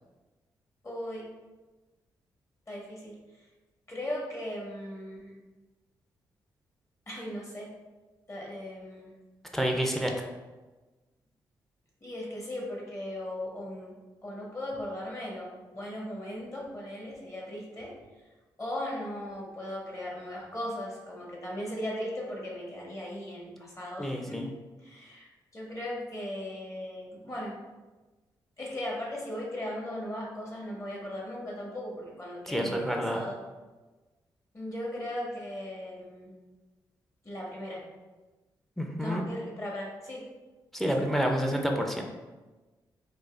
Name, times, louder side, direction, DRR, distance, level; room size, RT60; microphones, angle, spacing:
voice 1, 0.8-1.3 2.7-3.1 3.9-5.3 7.1-7.7 8.3-9.1 12.0-13.9 14.2-17.9 18.6-24.5 24.8-25.3 25.5-27.5 28.6-33.4 34.5-36.3 37.2-37.8 39.0-40.2, left 1 dB, 35° left, -3 dB, 1.3 m, -37 dB
voice 2, 9.5-10.3 24.0-24.5 32.5-33.3 38.8-39.2 40.7-42.0, equal, 5° left, 2 dB, 0.6 m, -29 dB
4.0 x 2.5 x 2.4 m, 1.2 s
supercardioid pair, 50°, 9 cm